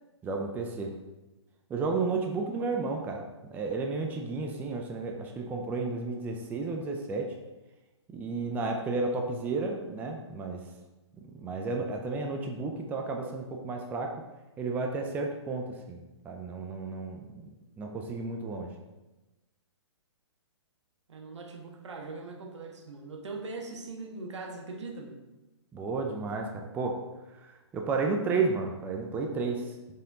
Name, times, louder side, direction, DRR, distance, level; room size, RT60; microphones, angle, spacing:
voice 1, 0.2-0.9 1.7-3.2 3.5-7.3 8.1-10.6 11.4-14.2 14.6-17.5 17.8-18.7 25.7-27.0 27.3-27.5 27.7-29.8, right 3 dB, 10° right, 2 dB, 0.5 m, -32 dB
voice 2, 21.1-25.2, right 3 dB, 70° right, 3 dB, 1.3 m, -41 dB
6.5 x 4.5 x 3.7 m, 1.1 s
hypercardioid pair, 135°, 15 cm